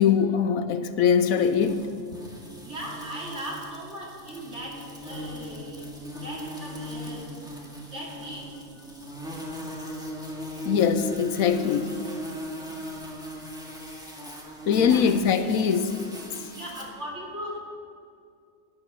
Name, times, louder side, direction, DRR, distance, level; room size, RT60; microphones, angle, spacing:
voice 1, 0.0-1.9 10.6-12.0 14.7-16.0, left 7 dB, 75° left, 1.1 m, -22 dB
sound 1, 1.4-16.8, equal, 5° right, 1.8 m, -38 dB
voice 2, 2.6-4.8 5.0-5.8 6.2-7.3 7.9-8.5 14.8-15.0 16.5-17.6, right 1 dB, 50° right, 2.8 m, -38 dB
12.0 x 11.5 x 6.9 m
omnidirectional pair, 1.5 m